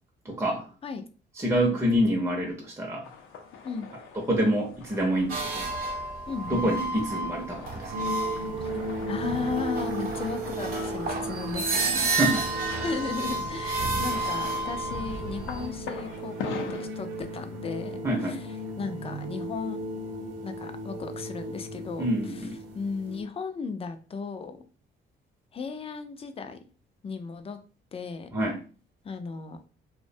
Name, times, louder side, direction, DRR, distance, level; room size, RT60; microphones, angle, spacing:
voice 1, 0.2-0.6 1.4-3.1 4.3-5.7 6.5-8.0 12.1-12.8 18.0-18.4 22.0-22.6 28.3-28.6, equal, 15° right, -1 dB, 0.6 m, -27 dB
sound 1, 3.0-16.9, left 5 dB, 85° left, 0.5 m, -43 dB
sound 2, 5.3-15.7, right 3 dB, 50° right, 0.7 m, -31 dB
voice 2, 6.3-6.7 8.6-8.7 9.1-12.1 12.8-19.8 20.4-24.6 25.5-26.7 27.0-27.6 27.9-28.3 29.0-29.6, left 5 dB, 30° left, 8 dB, 0.4 m, -35 dB
sound 3, 7.9-23.2, right 1 dB, 80° right, 0.6 m, -36 dB
2.5 x 2.1 x 2.6 m, 0.37 s
cardioid pair, 90°, 20 cm